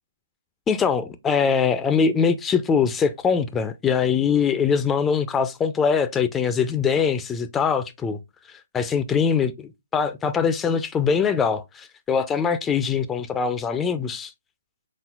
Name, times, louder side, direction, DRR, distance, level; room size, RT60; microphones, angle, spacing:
voice 1, 0.7-8.2 8.7-14.3, left 6 dB, 10° left, 0.3 m, -22 dB
4.2 x 3.8 x 2.3 m
figure-of-eight pair, 140°, 0 cm